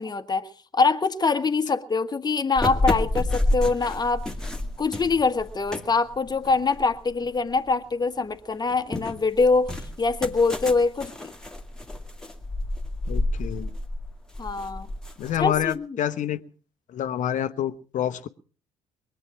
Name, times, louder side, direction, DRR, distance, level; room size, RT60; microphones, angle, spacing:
voice 1, 0.0-4.2 4.8-11.3 14.4-14.9 15.4-15.9, left 4 dB, 25° left, 9 dB, 1.4 m, -24 dB
sound 1, 2.6-7.7 8.1-15.7, left 1 dB, 5° left, 2.1 m, -30 dB
voice 2, 13.1-13.7 15.2-16.4 16.9-18.3, left 10 dB, 50° left, 11 dB, 1.0 m, -27 dB
23.0 x 8.3 x 6.2 m, 0.40 s
figure-of-eight pair, 50°, 17 cm